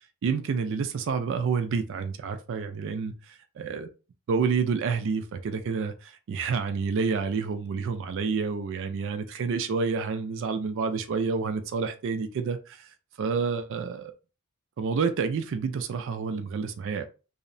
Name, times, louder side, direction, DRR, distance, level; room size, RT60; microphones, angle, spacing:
voice 1, 0.2-3.9 4.3-12.9 13.2-14.1 14.8-17.0, right 5 dB, 60° right, 0.3 m, -29 dB
2.7 x 2.0 x 2.6 m
head